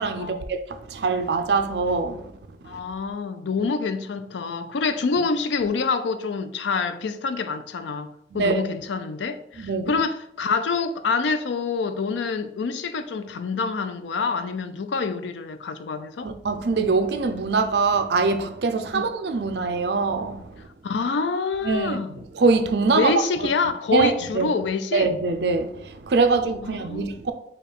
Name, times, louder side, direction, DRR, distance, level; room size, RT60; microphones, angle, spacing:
voice 1, 0.0-2.3 2.6-2.8 8.3-8.6 9.6-9.9 16.2-20.6 21.6-23.5 23.9-24.5 24.9-27.3, right 4 dB, 70° right, 0.5 m, -23 dB
voice 2, 2.6-16.3 18.9-19.0 20.8-22.1 22.9-25.1 26.6-27.2, left 4 dB, 90° left, 0.4 m, -26 dB
4.9 x 2.3 x 4.5 m
head